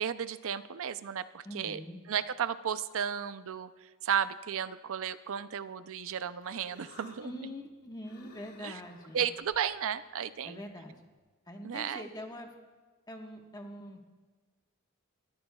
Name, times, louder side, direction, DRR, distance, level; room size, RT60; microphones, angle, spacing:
voice 1, 0.0-1.8 2.1-7.3 8.6-8.8 9.1-10.6 11.6-12.0, right 8 dB, 65° right, 13 dB, 0.5 m, -34 dB
voice 2, 1.4-2.0 7.2-9.2 10.4-10.9 11.5-12.5 13.1-14.0, left 1 dB, 20° left, 2 dB, 1.3 m, -44 dB
Human voice, 6.0-11.2, left 2 dB, 85° left, 2.0 m, -59 dB
24.0 x 13.0 x 2.3 m, 1.3 s
head